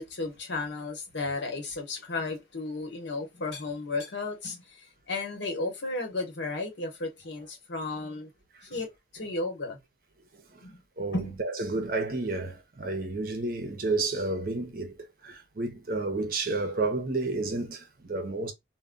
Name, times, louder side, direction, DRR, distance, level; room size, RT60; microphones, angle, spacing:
voice 1, 0.0-8.3 8.6-8.9 9.1-9.8 10.6-10.8 11.1-11.4, left 3 dB, 85° left, 0.9 m, -34 dB
voice 2, 11.0-18.5, right 3 dB, 50° right, 0.6 m, -31 dB
2.2 x 2.1 x 3.6 m
head